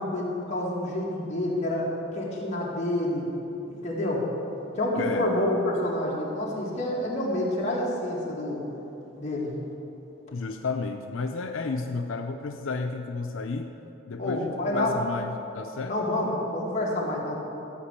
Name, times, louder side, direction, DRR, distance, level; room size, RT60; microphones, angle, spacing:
voice 1, 0.0-3.3 3.7-4.3 4.7-8.6 9.2-9.5 14.2-14.9 15.9-17.4, left 1 dB, 35° left, -5 dB, 2.4 m, -28 dB
voice 2, 5.0-5.3 10.3-13.7 14.1-16.0, left 4 dB, 85° left, 4 dB, 0.6 m, -32 dB
13.0 x 5.2 x 8.3 m, 3.0 s
head